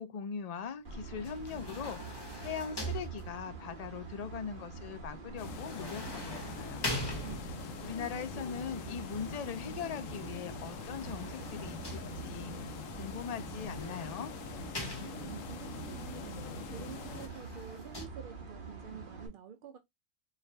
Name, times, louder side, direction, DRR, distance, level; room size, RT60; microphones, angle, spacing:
voice 1, 0.0-6.9 7.8-14.3, left 7 dB, 55° left, 0.4 m, -41 dB
sound 1, 0.8-19.3, right 4 dB, 45° right, 1.1 m, -46 dB
sound 2, 1.2-3.7 5.5-7.8 10.7-12.5 13.5-15.5 16.9-18.1, equal, 20° left, 0.9 m, -42 dB
sound 3, 5.4-17.3, left 6 dB, 85° left, 1.0 m, -44 dB
voice 2, 14.9-16.4 16.7-19.8, right 7 dB, 65° right, 0.5 m, -48 dB
4.7 x 2.4 x 3.2 m
omnidirectional pair, 1.4 m